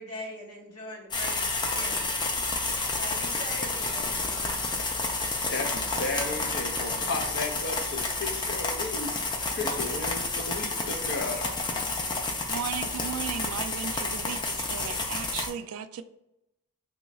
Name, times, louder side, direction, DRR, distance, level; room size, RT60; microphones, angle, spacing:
voice 1, 0.0-2.4 3.0-4.7, left 1 dB, 85° left, 1.2 m, -42 dB
sound 1, 1.1-15.5, left 3 dB, 20° left, 0.4 m, -30 dB
voice 2, 5.5-9.1 9.5-11.5, left 3 dB, 50° left, 0.7 m, -34 dB
voice 3, 12.3-16.0, right 8 dB, 75° right, 0.3 m, -36 dB
3.0 x 2.3 x 4.1 m
head